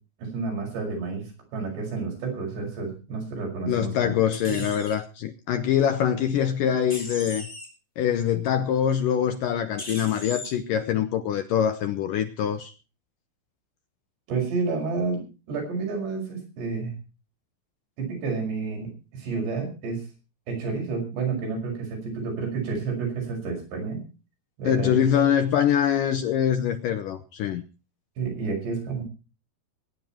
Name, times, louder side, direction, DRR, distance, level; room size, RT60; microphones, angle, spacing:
voice 1, 0.2-4.1 4.5-4.7 14.3-16.9 18.0-20.0 20.5-24.0 24.6-25.3 28.2-29.0, right 4 dB, 80° right, 7.9 m, -30 dB
voice 2, 3.7-7.5 8.0-12.7 24.7-27.6, left 9 dB, 75° left, 2.0 m, -24 dB
sound 1, 4.3-4.9 6.9-7.7 9.8-10.5, left 1 dB, 10° left, 4.0 m, -37 dB
22.0 x 9.6 x 4.4 m
omnidirectional pair, 4.9 m